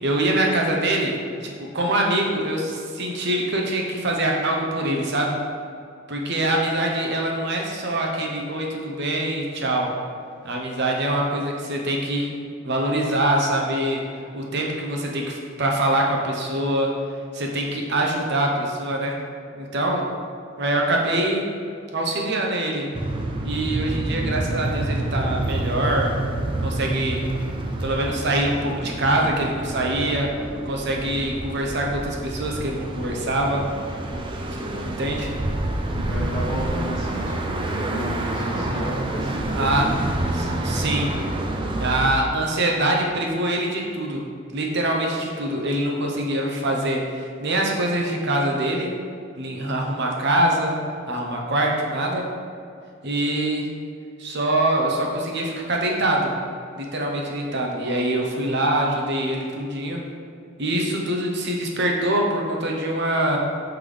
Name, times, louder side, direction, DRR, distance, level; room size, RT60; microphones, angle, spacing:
voice 1, 0.0-1.2 1.4-5.3 6.1-9.9 10.4-12.3 12.6-14.0 14.3-16.9 17.3-19.2 19.5-20.0 20.6-21.4 21.9-22.9 23.4-26.2 26.6-27.2 27.8-30.3 30.6-33.7 34.8-35.3 39.5-39.9 40.3-41.1 41.8-44.2 44.5-48.9 49.4-50.8 51.1-52.3 53.0-53.7 54.2-56.3 56.8-60.0 60.6-63.4, right 1 dB, 60° right, 0 dB, 0.9 m, -24 dB
sound 1, 22.9-42.1, right 1 dB, 25° right, 0.4 m, -28 dB
voice 2, 35.9-39.9, equal, 20° left, -7 dB, 1.2 m, -32 dB
5.9 x 5.3 x 3.4 m, 2.3 s
head